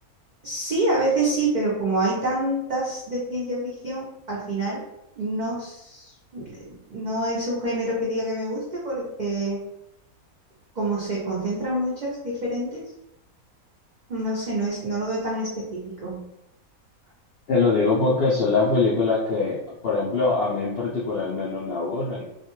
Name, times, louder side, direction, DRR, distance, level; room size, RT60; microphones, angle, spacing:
voice 1, 0.4-4.8 5.2-9.6 10.8-12.8 14.1-16.2, right 1 dB, 70° right, -6 dB, 0.4 m, -27 dB
voice 2, 17.5-19.6 19.8-22.3, left 3 dB, 75° left, -6 dB, 0.5 m, -23 dB
2.4 x 2.2 x 2.9 m, 0.86 s
omnidirectional pair, 1.6 m